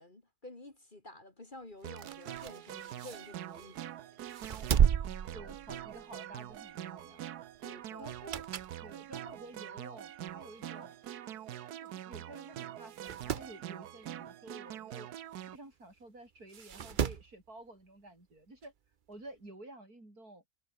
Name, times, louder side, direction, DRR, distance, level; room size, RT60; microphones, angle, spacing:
voice 1, 0.0-3.8 7.6-8.1, left 2 dB, 30° left, 2.5 m, -51 dB
sound 1, 1.8-3.8 4.3-6.1 6.5-6.7 8.0-8.8 9.3-9.4 10.3-10.4 10.6-10.7 10.9-11.0 11.9-12.0 12.4-12.5 12.8-13.5 15.4-15.5 16.5-17.3 18.6-18.7, right 8 dB, 50° right, 0.6 m, -33 dB
sound 2, 1.8-15.6, right 11 dB, 90° right, 1.4 m, -44 dB
voice 2, 5.3-7.2 8.0-8.4 8.8-11.0 11.7-15.1 15.5-18.7 19.1-20.4, right 2 dB, 70° right, 8.7 m, -51 dB
omnidirectional pair, 1.6 m